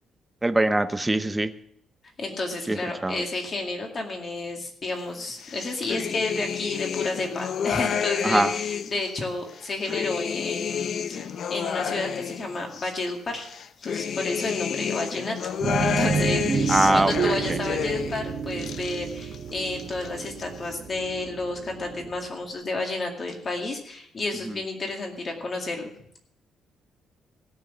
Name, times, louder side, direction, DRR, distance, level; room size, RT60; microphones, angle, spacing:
voice 1, 0.4-1.5 2.7-2.8 3.0-3.2 8.2-8.5 16.7-17.1 17.5-17.6, right 2 dB, 10° right, 10 dB, 0.6 m, -22 dB
voice 2, 2.2-13.5 13.8-15.5 15.8-25.9, left 2 dB, 30° left, 2 dB, 2.2 m, -31 dB
sound 1, 5.4-9.0 9.5-12.9 13.4-18.2 18.5-19.4 19.7-20.4, left 7 dB, 50° left, 0.6 m, -30 dB
sound 2, 15.6-22.2, right 5 dB, 35° right, 1.3 m, -29 dB
17.0 x 6.3 x 7.2 m, 0.71 s
cardioid pair, 170°, 0 cm